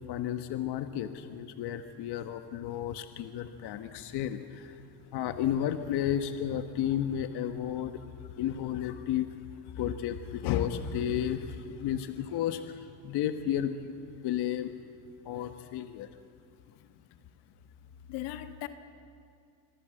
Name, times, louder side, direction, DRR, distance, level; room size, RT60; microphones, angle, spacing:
voice 1, 0.0-4.8 5.1-9.3 9.6-14.7 15.2-16.1, left 10 dB, 65° left, 8 dB, 1.4 m, -33 dB
voice 2, 18.1-18.7, left 14 dB, 85° left, 8 dB, 1.8 m, -39 dB
26.0 x 22.5 x 7.7 m, 2.4 s
cardioid pair, 115°, 43 cm